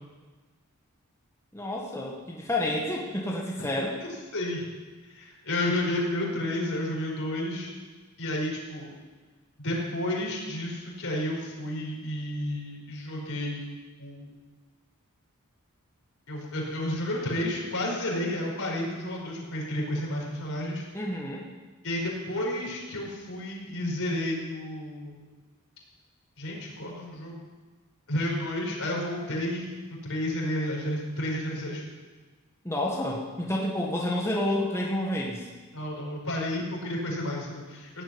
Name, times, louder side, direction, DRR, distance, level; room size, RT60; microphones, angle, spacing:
voice 1, 1.5-4.0 20.9-21.5 32.6-35.5, left 1 dB, 10° left, -3 dB, 1.7 m, -29 dB
voice 2, 4.0-4.6 5.1-7.7 8.2-9.0 9.6-13.7 14.0-14.3 16.3-20.8 21.8-25.3 26.4-27.4 28.1-29.7 30.0-31.8 35.7-38.0, left 1 dB, 65° left, -2 dB, 5.3 m, -31 dB
17.0 x 8.7 x 9.7 m, 1.3 s
head